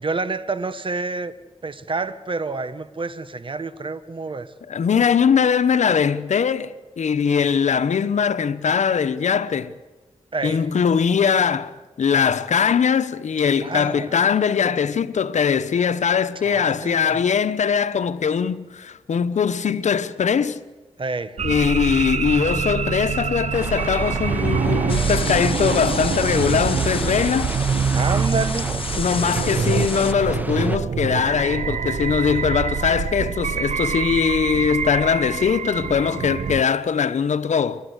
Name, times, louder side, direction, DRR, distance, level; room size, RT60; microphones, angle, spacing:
voice 1, 0.0-1.3 1.6-4.5 10.3-10.6 13.6-14.2 16.4-17.4 21.0-21.4 26.3-26.7 27.9-28.7, right 3 dB, 45° right, 1.2 m, -28 dB
voice 2, 4.7-9.7 10.4-20.6 21.4-27.5 29.0-37.8, left 7 dB, 80° left, 1.0 m, -21 dB
sound 1, 21.4-36.6, right 7 dB, 70° right, 0.6 m, -25 dB
sound 2, 23.5-30.8, right 1 dB, 15° right, 1.3 m, -34 dB
sound 3, 24.9-30.1, left 4 dB, 50° left, 1.1 m, -32 dB
28.5 x 12.0 x 8.1 m
cardioid pair, 45°, 12 cm